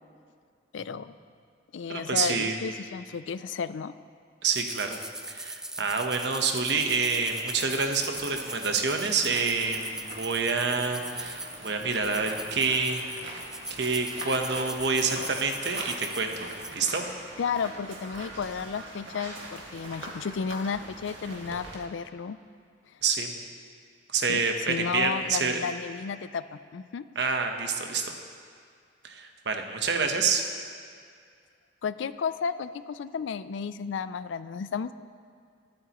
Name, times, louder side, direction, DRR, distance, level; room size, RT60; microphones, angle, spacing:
voice 1, 0.7-1.1 1.7-3.9 17.4-22.4 24.3-24.4 24.7-27.1 31.8-34.9, left 6 dB, 90° left, 14 dB, 0.4 m, -33 dB
voice 2, 1.9-2.6 4.4-5.0 5.3-13.0 13.7-17.1 23.0-23.3 24.1-25.6 27.1-28.1 29.0-30.4, right 4 dB, 65° right, 4 dB, 1.0 m, -27 dB
sound 1, 4.5-16.7, right 1 dB, 5° right, 0.3 m, -40 dB
sound 2, 7.1-21.7, right 2 dB, 90° right, 1.9 m, -43 dB
22.0 x 8.6 x 3.0 m, 2.2 s
head